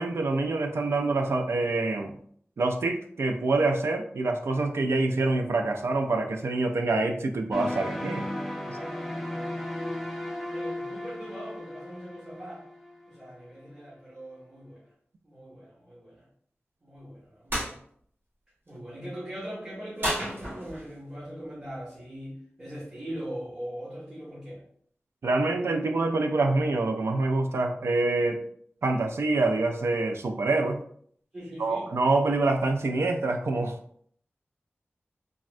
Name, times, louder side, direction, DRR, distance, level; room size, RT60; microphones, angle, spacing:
voice 1, 0.0-2.2 2.6-8.3 8.7-8.8 25.2-28.4 28.8-30.8 31.6-33.7, right 2 dB, 80° right, 5 dB, 0.4 m, -26 dB
sound 1, 7.5-13.4, left 1 dB, ahead, 0.4 m, -35 dB
voice 2, 8.5-10.2 10.5-12.6 13.1-14.8 15.2-16.2 16.8-17.8 18.7-24.6 31.3-31.9, equal, 35° right, -7 dB, 1.1 m, -41 dB
sound 2, 17.5-17.7 20.0-21.0, right 1 dB, 55° right, 1.1 m, -31 dB
3.5 x 2.1 x 2.5 m, 0.62 s
wide cardioid pair, 95°, 4 cm